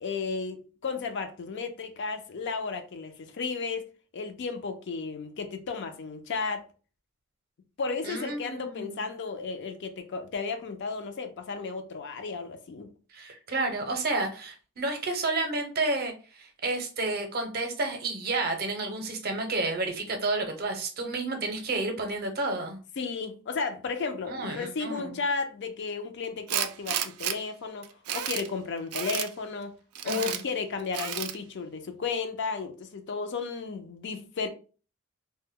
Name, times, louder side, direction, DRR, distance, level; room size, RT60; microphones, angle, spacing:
voice 1, 0.0-3.8 4.1-6.6 7.8-12.9 23.0-29.8 30.0-34.5, left 4 dB, 55° left, 0.4 m, -33 dB
voice 2, 8.0-9.0 13.1-22.8 24.3-25.2 30.0-30.4, right 2 dB, 45° right, 0.6 m, -31 dB
Tools, 26.5-27.4 27.8-28.5 28.9-29.3 29.9-30.4 30.9-31.4, right 10 dB, 90° right, 0.3 m, -31 dB
2.1 x 2.0 x 3.5 m
head